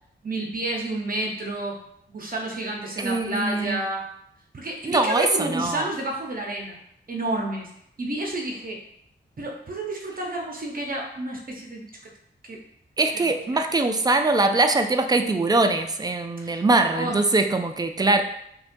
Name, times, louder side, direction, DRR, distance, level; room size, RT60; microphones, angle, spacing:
voice 1, 0.2-1.8 2.1-4.0 4.5-6.8 7.1-7.7 8.0-8.8 9.4-11.9 12.4-12.6 13.1-13.3 16.4-16.6 16.9-17.3, right 1 dB, 45° right, 0 dB, 0.7 m, -30 dB
voice 2, 3.0-3.8 4.8-5.9 13.0-18.2, right 2 dB, 20° right, 6 dB, 0.3 m, -22 dB
5.2 x 2.2 x 2.5 m, 0.73 s
wide cardioid pair, 85°, 21 cm